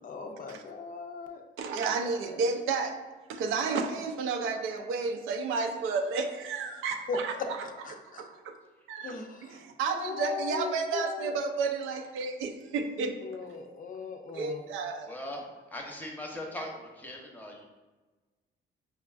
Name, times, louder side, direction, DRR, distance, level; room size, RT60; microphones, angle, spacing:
voice 1, 0.0-1.4 1.9-2.4 7.1-7.2 7.6-8.2 9.0-9.6 9.9-11.4 13.2-14.6, left 5 dB, 45° left, 4 dB, 0.4 m, -39 dB
voice 2, 1.6-3.0 3.3-7.6 8.2-8.6 8.9-9.2 9.4-13.2 14.3-15.1, right 4 dB, 90° right, 5 dB, 0.4 m, -31 dB
voice 3, 15.0-17.7, left 1 dB, 10° left, 0 dB, 0.7 m, -40 dB
5.0 x 2.3 x 2.3 m, 1.2 s
cardioid pair, 90°, 20 cm